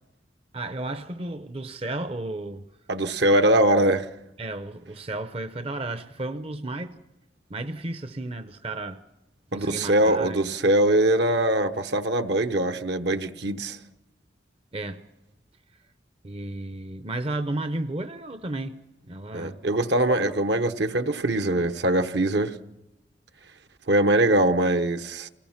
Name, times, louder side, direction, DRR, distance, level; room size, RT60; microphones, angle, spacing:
voice 1, 0.5-2.7 4.4-7.0 7.5-9.0 9.5-10.5 14.7-15.1 16.2-18.8 19.0-19.6, right 2 dB, 30° right, 0.7 m, -33 dB
voice 2, 2.9-4.1 9.5-13.8 19.3-22.5 23.9-25.3, right 1 dB, 65° right, 1.0 m, -22 dB
28.0 x 19.0 x 5.8 m
head